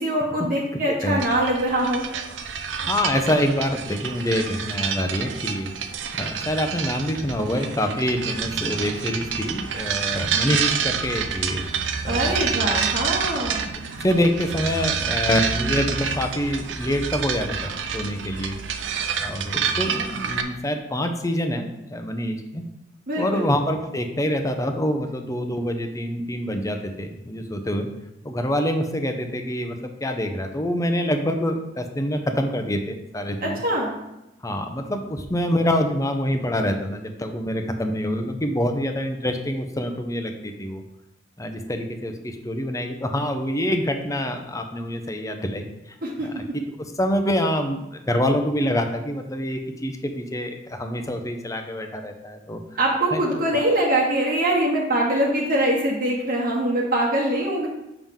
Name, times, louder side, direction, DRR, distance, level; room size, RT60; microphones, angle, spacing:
voice 1, 0.0-2.0 12.0-13.7 23.1-23.4 33.4-33.9 46.0-46.3 52.8-57.7, right 1 dB, 50° right, -4 dB, 1.3 m, -23 dB
voice 2, 0.9-1.2 2.8-5.7 6.1-11.6 12.0-12.3 14.0-18.5 19.2-22.6 23.2-27.9 28.2-33.6 34.4-40.8 41.4-45.7 46.2-46.4 47.0-52.6 53.1-53.4, equal, 20° left, 6 dB, 0.7 m, -26 dB
sound 1, 1.2-20.4, right 6 dB, 85° right, 0.6 m, -28 dB
7.2 x 5.9 x 3.7 m, 0.89 s
head